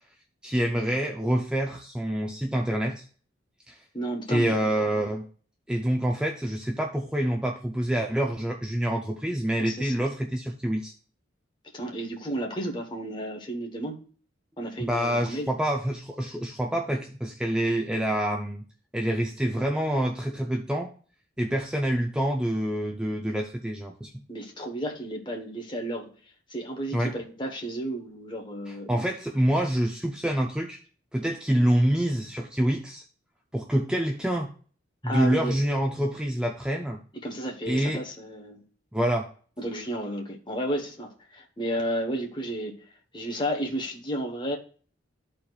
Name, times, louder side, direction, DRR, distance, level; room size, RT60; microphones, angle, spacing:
voice 1, 0.4-3.0 3.7-3.8 4.3-5.3 5.7-10.9 14.8-18.7 18.9-20.9 21.4-24.1 26.9-27.1 28.7-30.8 31.1-33.0 33.5-34.5 35.0-37.0 37.7-38.0 38.9-39.3, right 1 dB, 5° right, 1 dB, 0.4 m, -26 dB
voice 2, 3.9-4.5 9.6-9.9 11.7-14.0 14.6-15.5 24.3-26.1 26.5-29.0 35.0-35.6 37.2-38.6 39.6-42.8 43.1-44.6, right 1 dB, 25° left, 1 dB, 1.1 m, -32 dB
12.5 x 4.3 x 2.4 m, 0.42 s
head